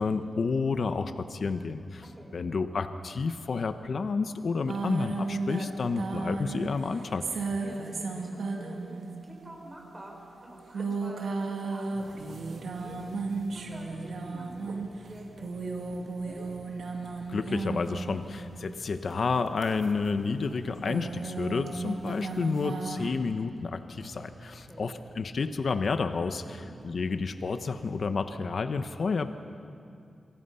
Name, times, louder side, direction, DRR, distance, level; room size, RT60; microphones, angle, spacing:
voice 1, 0.0-2.0 2.3-7.2 17.3-26.4 26.8-29.3, left 4 dB, 60° left, 9 dB, 1.1 m, -30 dB
sound 1, 4.7-18.8 19.5-23.1, right 3 dB, 85° right, 2.4 m, -35 dB
voice 2, 7.6-13.2 13.5-16.5 24.6-25.0 26.4-26.8, right 1 dB, 20° right, 0 dB, 5.2 m, -48 dB
sound 2, 11.9-27.9, right 1 dB, 15° left, 4.3 m, -52 dB
27.5 x 23.0 x 5.7 m, 2.4 s
wide cardioid pair, 105°, 0 cm